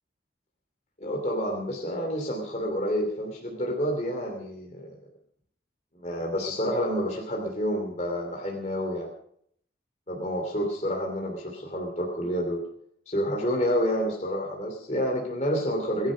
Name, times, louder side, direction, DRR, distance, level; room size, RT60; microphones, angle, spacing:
voice 1, 1.0-5.0 5.9-9.1 10.1-12.7 13.1-16.1, equal, 35° left, 0 dB, 2.9 m, -29 dB
22.5 x 11.5 x 5.1 m, 0.66 s
head